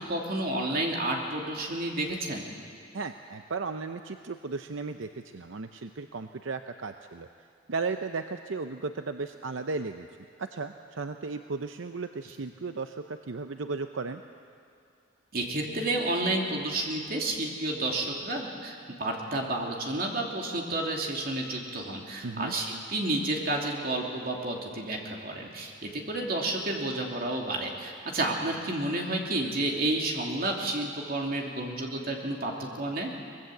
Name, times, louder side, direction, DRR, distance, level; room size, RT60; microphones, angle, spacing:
voice 1, 0.0-2.4 15.3-32.5 32.8-33.1, right 2 dB, 45° right, 0 dB, 2.9 m, -30 dB
voice 2, 2.9-7.3 7.7-10.1 10.4-14.2 22.2-22.5, right 4 dB, 75° right, 7 dB, 0.7 m, -35 dB
23.5 x 20.0 x 7.8 m, 2.4 s
head